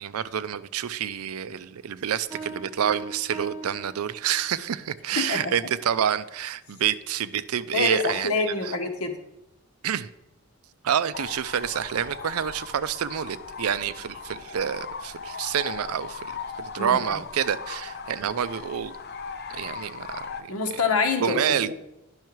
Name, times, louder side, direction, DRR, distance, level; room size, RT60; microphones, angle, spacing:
voice 1, 0.0-8.7 9.8-10.1 10.8-16.3 16.6-18.9 19.5-20.5 21.2-21.7, right 9 dB, 85° right, 0.4 m, -28 dB
sound 1, 2.3-4.7, right 2 dB, 10° right, 3.9 m, -40 dB
voice 2, 5.1-5.6 7.7-9.1 16.8-17.0 20.5-21.7, left 4 dB, 90° left, 1.2 m, -26 dB
sound 2, 11.1-20.4, left 5 dB, 45° left, 0.5 m, -38 dB
10.5 x 5.6 x 4.6 m
head